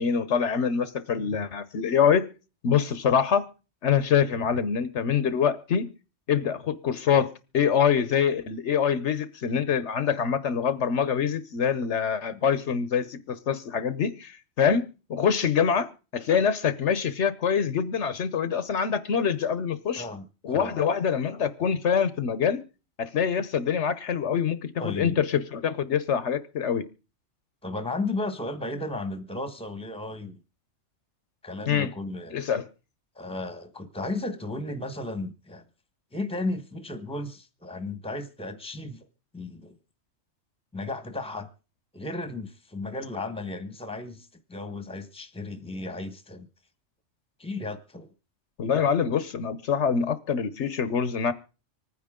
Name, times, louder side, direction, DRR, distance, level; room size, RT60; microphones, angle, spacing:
voice 1, 0.0-2.3 2.6-3.5 3.8-5.9 6.3-14.8 15.1-20.0 20.4-22.6 23.0-26.9 31.7-31.9 32.3-32.7 48.6-51.3, left 7 dB, 65° left, 1.1 m, -25 dB
voice 2, 20.0-20.8 24.8-25.2 27.6-30.4 31.4-32.4 33.2-35.6 36.1-39.1 39.3-39.8 40.7-41.5 41.9-46.5 47.4-48.1, left 2 dB, 5° left, 1.1 m, -34 dB
25.5 x 9.6 x 3.7 m
omnidirectional pair, 1.3 m